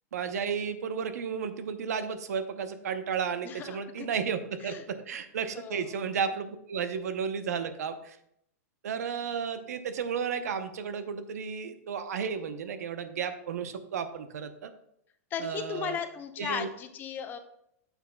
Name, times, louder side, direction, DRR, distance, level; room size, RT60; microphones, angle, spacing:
voice 1, 0.1-8.2 8.8-14.7 15.4-16.0 16.4-16.7, right 6 dB, 85° right, 10 dB, 0.7 m, -33 dB
voice 2, 3.4-4.1 4.6-4.9 5.5-6.0 15.3-17.4, left 7 dB, 20° left, 9 dB, 0.6 m, -36 dB
9.2 x 7.1 x 2.2 m, 0.76 s
supercardioid pair, 150°, 8 cm